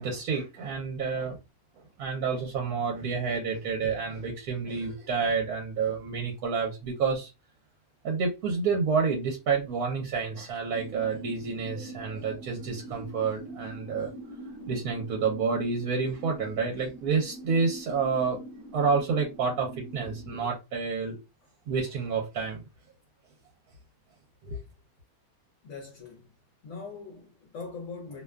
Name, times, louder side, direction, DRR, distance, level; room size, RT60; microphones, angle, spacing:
voice 1, 0.0-1.4 2.0-7.3 8.0-14.1 14.7-18.4 18.7-21.2 21.7-22.6 24.4-24.6, right 5 dB, 80° right, 1.2 m, -29 dB
sound 1, 10.7-20.4, right 2 dB, 45° right, 1.0 m, -44 dB
voice 2, 25.6-26.3 26.6-28.2, left 4 dB, 60° left, 1.0 m, -41 dB
2.8 x 2.2 x 2.2 m
omnidirectional pair, 1.6 m